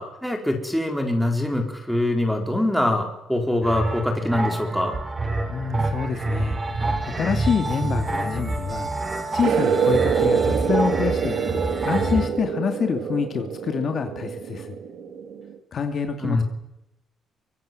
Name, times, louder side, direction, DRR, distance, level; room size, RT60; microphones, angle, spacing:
voice 1, 0.0-5.0 16.2-16.4, left 1 dB, ahead, 4 dB, 4.3 m, -24 dB
sound 1, 3.6-12.3, right 2 dB, 20° right, 3.3 m, -27 dB
voice 2, 5.5-6.6 7.0-8.9 9.3-11.4 11.8-14.8 15.7-16.4, left 6 dB, 40° left, 6 dB, 2.3 m, -26 dB
sound 2, 9.4-15.6, right 7 dB, 65° right, 2.5 m, -25 dB
24.5 x 24.0 x 7.8 m, 0.88 s
cardioid pair, 160°, 0 cm